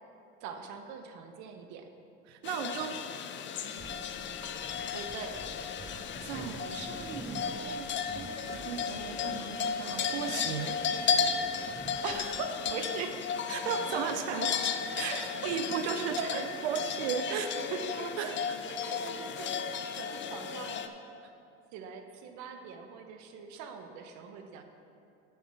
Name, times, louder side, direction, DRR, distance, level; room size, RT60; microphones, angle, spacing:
voice 1, 0.4-1.9 4.9-5.4 12.0-13.2 15.1-15.5 16.2-16.5 17.3-17.8 18.9-20.9 21.7-24.6, right 6 dB, 65° right, 6 dB, 1.0 m, -40 dB
voice 2, 2.3-3.0 5.9-7.9 8.1-10.8 13.5-14.6 15.0-17.5 17.9-18.6, right 8 dB, 90° right, 7 dB, 0.7 m, -36 dB
sound 1, 2.4-20.9, left 6 dB, 35° left, 0.6 m, -34 dB
sound 2, 3.8-12.7, right 3 dB, 10° right, 0.4 m, -49 dB
7.5 x 7.1 x 5.8 m, 2.7 s
supercardioid pair, 90°, 32 cm